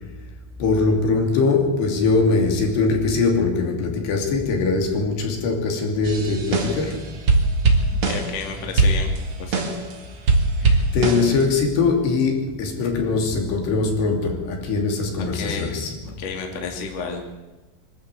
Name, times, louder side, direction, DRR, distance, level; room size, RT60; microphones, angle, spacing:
voice 1, 0.6-7.1 10.9-15.9, left 4 dB, 75° left, 4.9 m, -21 dB
sound 1, 6.0-7.0 7.3-8.5 8.8-9.9 10.3-11.4, right 3 dB, 40° right, 2.6 m, -21 dB
voice 2, 8.1-9.1 9.4-9.6 15.3-15.7 16.2-17.4, left 5 dB, 40° left, 3.3 m, -31 dB
24.5 x 13.0 x 8.2 m
omnidirectional pair, 5.0 m